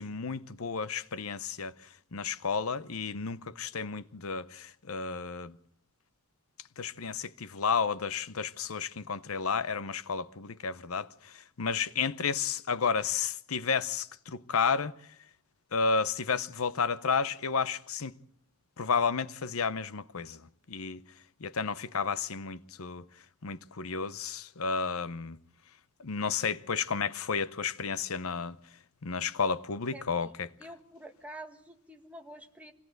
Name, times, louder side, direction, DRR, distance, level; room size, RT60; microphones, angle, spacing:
voice 1, 0.0-1.7 2.1-5.6 6.8-14.9 15.7-18.1 18.8-20.4 20.7-21.0 21.4-23.1 23.4-25.4 26.0-28.6 29.0-30.5, left 5 dB, 80° left, 0.8 m, -32 dB
voice 2, 29.9-30.3 30.6-32.7, right 1 dB, 5° right, 1.7 m, -47 dB
25.5 x 17.5 x 7.9 m
head